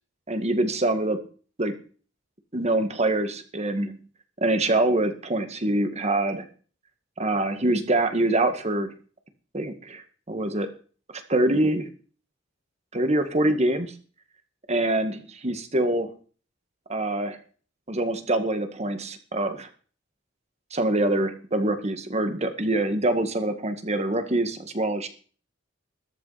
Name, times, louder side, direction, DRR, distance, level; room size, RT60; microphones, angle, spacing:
voice 1, 0.3-1.2 1.6-1.7 2.5-4.0 4.4-6.5 7.2-9.0 9.5-10.7 11.3-11.9 12.9-14.0 14.7-15.2 15.4-16.1 16.9-17.4 17.9-19.7 20.7-25.1, right 1 dB, 35° right, 8 dB, 1.8 m, -25 dB
13.5 x 13.5 x 4.2 m, 0.40 s
head